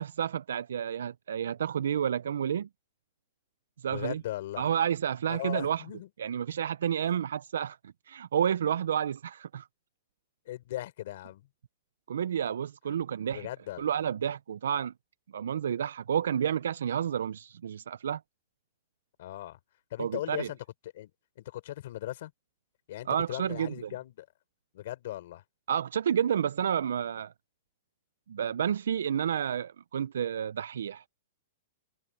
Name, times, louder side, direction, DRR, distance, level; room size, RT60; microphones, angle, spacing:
voice 1, 0.0-2.7 3.8-4.2 4.6-5.8 6.2-9.7 12.1-13.5 13.8-14.9 15.3-18.2 20.0-20.5 23.1-23.9 25.7-27.3 28.3-31.1, right 9 dB, 90° right, 0.4 m, -30 dB
voice 2, 3.9-4.7 5.3-6.1 10.5-11.4 12.9-13.0 13.3-13.9 19.2-19.6 19.9-20.6 20.9-21.1 21.4-22.3 22.9-24.3 24.7-25.4, left 14 dB, 50° left, 3.9 m, -38 dB
hypercardioid pair, 170°, 0 cm